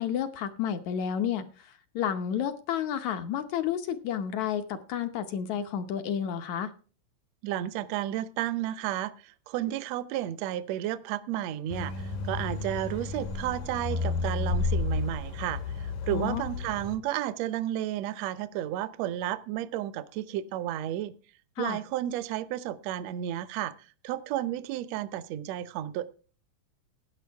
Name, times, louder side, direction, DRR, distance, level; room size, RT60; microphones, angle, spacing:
voice 1, 0.0-6.7 16.1-16.4 21.6-21.8, left 9 dB, 70° left, 8 dB, 2.1 m, -31 dB
voice 2, 7.4-21.1 21.6-26.1, right 12 dB, 70° right, 14 dB, 1.6 m, -32 dB
sound 1, 11.7-17.0, left 3 dB, 90° left, 3.6 m, -32 dB
16.0 x 10.5 x 3.5 m, 0.37 s
omnidirectional pair, 3.8 m